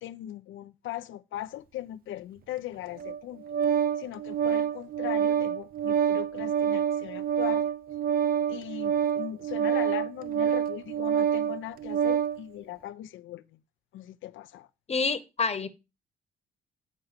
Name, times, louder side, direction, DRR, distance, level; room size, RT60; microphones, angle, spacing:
voice 1, 0.0-3.4 4.0-7.6 8.5-13.6 13.9-14.7, left 13 dB, 80° left, 0.6 m, -39 dB
Organ, 3.0-12.4, right 8 dB, 50° right, 0.4 m, -27 dB
voice 2, 14.9-15.7, left 4 dB, 30° left, 1.0 m, -27 dB
8.6 x 4.6 x 5.0 m
cardioid pair, 90°, 20 cm